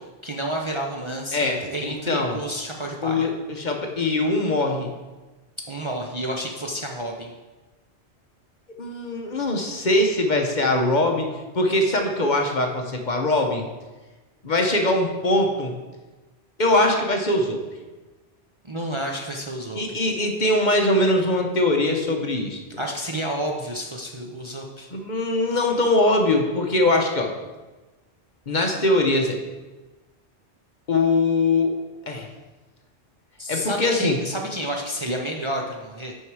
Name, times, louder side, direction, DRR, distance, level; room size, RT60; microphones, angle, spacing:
voice 1, 0.0-3.3 5.7-7.3 18.6-20.0 22.8-24.9 33.4-36.1, equal, 30° right, 0 dB, 0.7 m, -30 dB
voice 2, 1.3-2.4 3.0-4.9 8.7-11.3 11.5-13.6 14.4-15.7 16.6-17.6 19.7-22.6 24.9-27.3 28.5-29.4 30.9-31.7 32.1-32.3 33.5-34.2, left 2 dB, 45° left, 2 dB, 1.0 m, -22 dB
9.0 x 5.7 x 4.7 m, 1.2 s
omnidirectional pair, 1.2 m